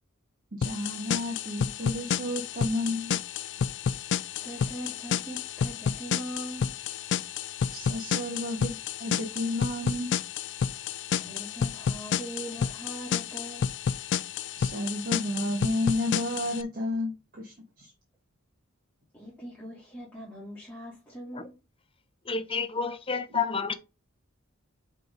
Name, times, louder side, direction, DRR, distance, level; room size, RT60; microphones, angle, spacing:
voice 1, 0.5-3.2 7.7-10.1 14.6-17.9, left 1 dB, 40° right, 1.6 m, -32 dB
sound 1, 0.6-16.6, left 7 dB, 55° left, 0.3 m, -31 dB
voice 2, 4.3-6.7 11.2-13.7 19.1-21.6, equal, 10° left, 2.5 m, -41 dB
voice 3, 22.3-23.7, left 5 dB, 25° left, 0.8 m, -29 dB
5.7 x 3.7 x 5.3 m
head